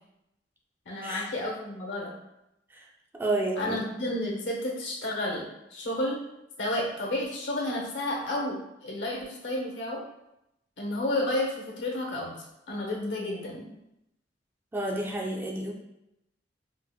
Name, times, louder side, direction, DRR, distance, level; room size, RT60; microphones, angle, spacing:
voice 1, 0.9-2.1 3.6-6.2 6.6-10.0 10.8-12.4 12.7-13.7, left 1 dB, 85° left, -1 dB, 0.8 m, -31 dB
voice 2, 3.1-3.8 14.7-15.7, right 2 dB, 10° right, 0 dB, 0.3 m, -30 dB
4.5 x 2.0 x 2.3 m, 0.85 s
head